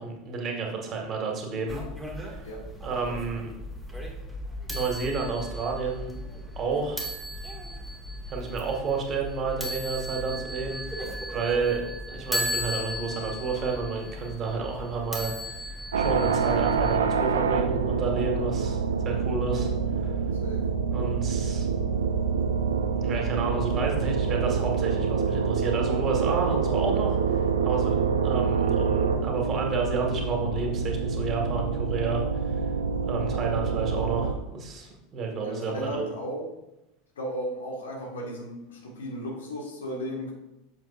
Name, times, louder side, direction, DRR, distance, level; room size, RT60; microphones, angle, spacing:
voice 1, 0.0-1.8 2.1-2.4 2.8-3.5 4.7-6.1 6.6-7.1 8.3-11.8 12.1-19.7 20.0-20.1 20.9-21.7 23.0-28.0 28.2-32.6 33.0-36.0, right 4 dB, 35° right, 0 dB, 1.9 m, -31 dB
sound 1, 1.7-17.0, equal, ahead, 1.9 m, -36 dB
voice 2, 10.1-10.4 20.4-20.7 35.4-36.5 37.2-40.3, equal, 75° left, 0 dB, 1.7 m, -35 dB
sound 2, 15.9-34.3, right 5 dB, 75° right, 0.5 m, -26 dB
7.9 x 7.1 x 2.6 m, 0.91 s
figure-of-eight pair, 80°, 0 cm